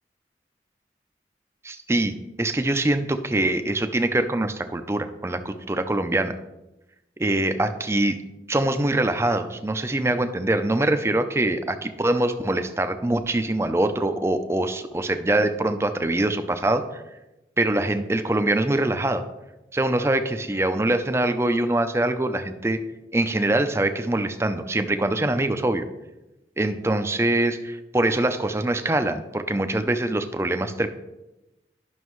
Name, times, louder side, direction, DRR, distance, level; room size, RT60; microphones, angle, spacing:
voice 1, 1.6-6.4 7.2-8.2 8.5-17.0 17.6-19.2 19.7-22.8 23.1-25.8 26.6-30.9, right 1 dB, 15° right, 9 dB, 0.4 m, -24 dB
11.0 x 6.2 x 3.1 m, 0.99 s
head